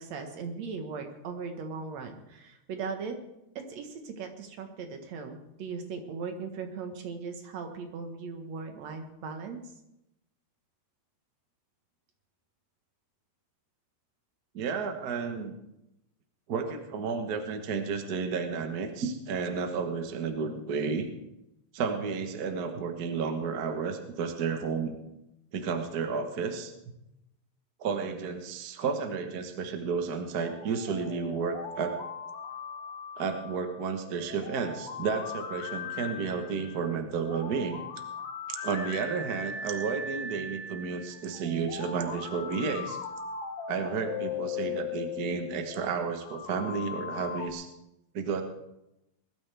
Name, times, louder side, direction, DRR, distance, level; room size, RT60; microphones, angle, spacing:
voice 1, 0.0-3.2 3.6-9.6, right 5 dB, 65° right, 5 dB, 2.6 m, -38 dB
voice 2, 14.5-15.5 16.5-21.1 21.7-25.0 25.5-26.7 27.8-31.9 33.2-37.8 38.5-43.0 43.7-47.7 48.1-48.4, right 5 dB, 50° right, 5 dB, 1.2 m, -32 dB
sound 1, 30.3-47.5, left 5 dB, 60° left, 1.8 m, -39 dB
20.5 x 12.5 x 3.5 m, 0.88 s
omnidirectional pair, 3.4 m